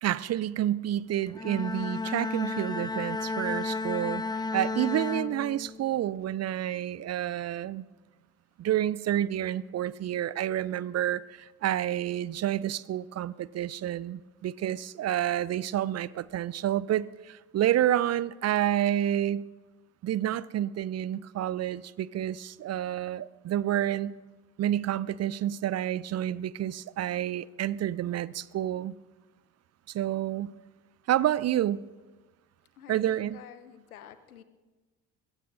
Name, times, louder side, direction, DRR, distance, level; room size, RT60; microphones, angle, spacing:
voice 1, 0.0-7.8 8.6-19.4 20.0-24.2 24.6-28.9 29.9-30.6 31.1-31.8 32.9-33.4, right 12 dB, 40° right, 0.5 m, -29 dB
Bowed string instrument, 1.3-5.9, left 3 dB, 10° left, 0.6 m, -33 dB
voice 2, 32.8-34.4, left 10 dB, 85° left, 0.8 m, -49 dB
22.0 x 16.0 x 2.7 m
figure-of-eight pair, 50°, 42 cm